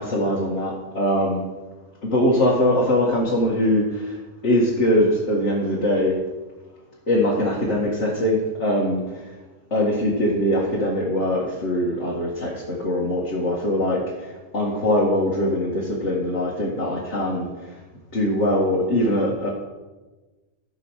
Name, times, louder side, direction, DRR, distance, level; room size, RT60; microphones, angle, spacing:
voice 1, 0.0-1.4 2.0-4.2 4.4-6.2 7.1-9.0 9.7-14.3 14.5-17.5 18.1-19.5, left 1 dB, 55° left, -4 dB, 2.3 m, -22 dB
15.5 x 6.1 x 6.4 m, 1.2 s
omnidirectional pair, 1.5 m